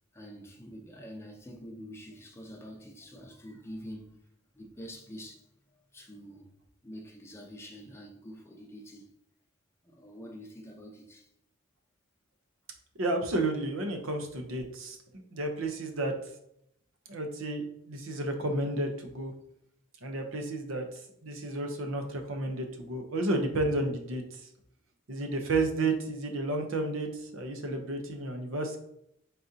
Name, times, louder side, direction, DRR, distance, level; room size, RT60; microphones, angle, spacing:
voice 1, 0.1-4.2 4.5-5.5 5.9-6.5 6.8-9.1 9.8-11.3, equal, 10° left, 0.6 m, -46 dB
voice 2, 13.0-16.1 17.1-19.3 20.0-24.5 25.1-28.8, right 2 dB, 75° right, 0.7 m, -32 dB
4.1 x 3.7 x 2.7 m
head